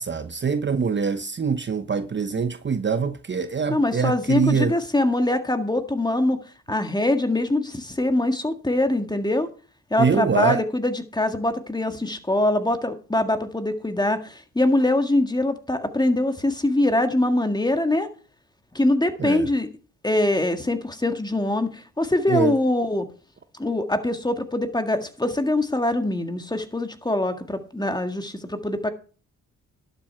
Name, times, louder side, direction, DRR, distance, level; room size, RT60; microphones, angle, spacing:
voice 1, 0.0-4.7 10.0-10.6 19.2-19.5 22.3-22.6, right 5 dB, 35° right, 0.9 m, -24 dB
voice 2, 3.7-6.4 6.7-9.5 9.9-18.1 18.7-19.7 20.0-23.1 23.6-28.9, left 1 dB, 10° left, 1.8 m, -23 dB
11.5 x 8.1 x 4.4 m
supercardioid pair, 60°, 34 cm